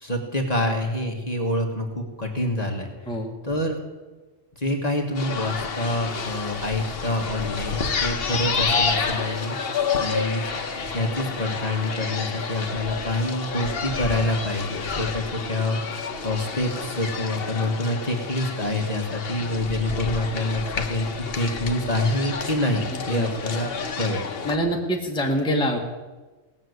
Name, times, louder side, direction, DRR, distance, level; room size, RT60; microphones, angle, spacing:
voice 1, 0.0-2.9 3.4-3.8 4.6-10.4 10.8-21.1 21.4-24.2, left 1 dB, 30° left, 1 dB, 1.6 m, -27 dB
sound 1, 5.1-24.6, left 5 dB, 50° left, 1.1 m, -29 dB
voice 2, 22.9-23.3 24.4-25.8, equal, 5° left, 0 dB, 1.4 m, -25 dB
18.0 x 6.7 x 8.0 m, 1.2 s
omnidirectional pair, 1.4 m